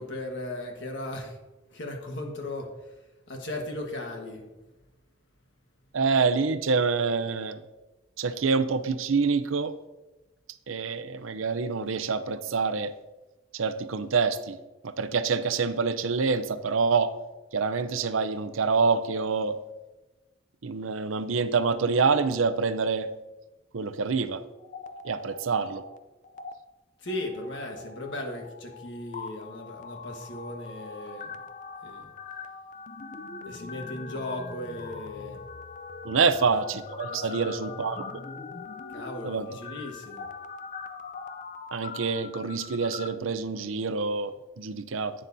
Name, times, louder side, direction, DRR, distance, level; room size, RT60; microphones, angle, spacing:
voice 1, 0.0-1.4 1.7-2.9 3.3-4.4 27.0-31.3 31.8-32.1 33.5-35.4 36.2-36.3 37.1-37.8 38.9-40.3, left 1 dB, 60° left, 2 dB, 1.4 m, -37 dB
voice 2, 5.9-7.6 8.2-9.7 10.7-12.9 13.5-14.6 14.8-17.1 17.5-19.6 20.6-23.1 23.7-24.4 25.0-25.8 36.0-38.0 39.2-39.5 41.7-45.1, right 4 dB, 80° right, 11 dB, 0.6 m, -26 dB
sound 1, 24.6-26.0 26.2-26.5 27.1-43.1, left 4 dB, 40° left, 0.5 m, -42 dB
11.0 x 8.9 x 2.7 m, 1.1 s
head